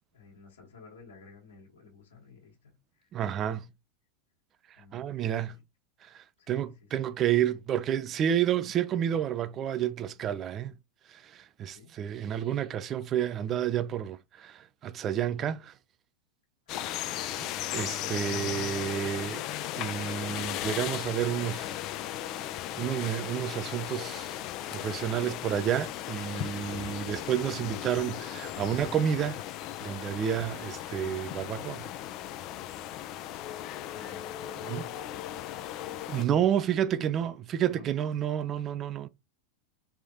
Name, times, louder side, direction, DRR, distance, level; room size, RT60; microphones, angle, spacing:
voice 1, 0.1-3.1 4.8-5.6 6.4-6.7 7.0-7.1 11.6-11.9 16.7-17.4 33.4-34.7 35.0-37.2 37.7-37.9, left 4 dB, 70° left, 1.5 m, -54 dB
voice 2, 3.1-3.6 4.9-5.5 6.1-10.7 11.1-15.7 17.1-17.5 17.7-19.4 19.8-21.8 22.7-24.4 24.7-29.4 29.8-31.9 34.6-34.9 36.1-39.1, right 10 dB, 30° right, 0.4 m, -30 dB
sound 1, 16.7-36.2, left 12 dB, 40° left, 0.4 m, -36 dB
3.5 x 3.5 x 2.8 m
figure-of-eight pair, 90°, 0 cm